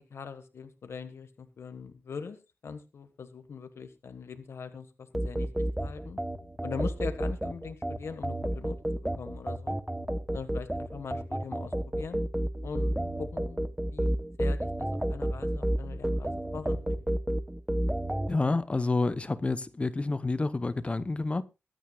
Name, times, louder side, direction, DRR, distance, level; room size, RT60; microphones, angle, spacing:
voice 1, 0.0-2.4 2.6-6.2 6.6-9.8 10.3-12.2 12.6-16.9, left 5 dB, 70° left, 1.4 m, -42 dB
sound 1, 5.1-18.3, right 1 dB, 10° right, 0.8 m, -31 dB
voice 2, 18.3-21.4, left 3 dB, 25° left, 0.8 m, -29 dB
23.0 x 9.2 x 2.3 m
wide cardioid pair, 130°, 5 cm